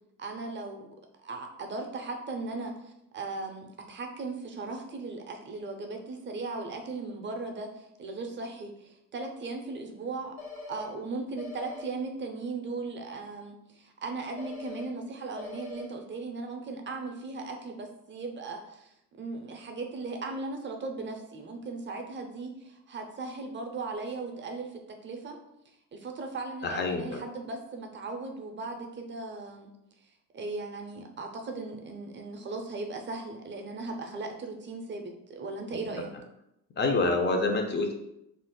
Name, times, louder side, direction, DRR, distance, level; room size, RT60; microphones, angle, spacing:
voice 1, 0.2-0.9 1.2-10.3 10.7-25.4 25.9-29.7 30.3-36.1, right 3 dB, 30° right, 4 dB, 0.5 m, -37 dB
sound 1, 10.4-10.9 11.4-11.9 14.4-14.9 15.4-15.9, left 4 dB, 85° left, 0.8 m, -42 dB
voice 2, 26.6-27.2 36.8-37.9, left 3 dB, 30° left, 4 dB, 0.4 m, -27 dB
2.5 x 2.0 x 3.6 m, 0.82 s
cardioid pair, 95°, 37 cm